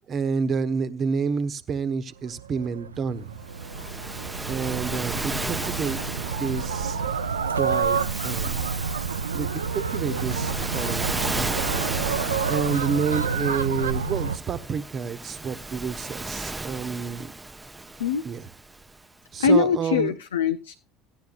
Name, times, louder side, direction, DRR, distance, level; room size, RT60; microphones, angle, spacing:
voice 1, 0.1-3.4 4.5-6.0 6.3-7.0 7.5-8.7 9.3-11.1 12.5-17.3 18.2-18.5 19.3-20.1, right 5 dB, 40° right, 11 dB, 1.0 m, -29 dB
sound 1, 2.3-14.4, right 6 dB, 90° right, 0.4 m, -29 dB
Waves surf, 3.4-18.9, right 2 dB, 10° right, 0.7 m, -34 dB
voice 2, 19.4-20.7, left 5 dB, 85° left, 9 dB, 0.4 m, -22 dB
15.5 x 10.5 x 2.5 m, 0.33 s
hypercardioid pair, 65°, 0 cm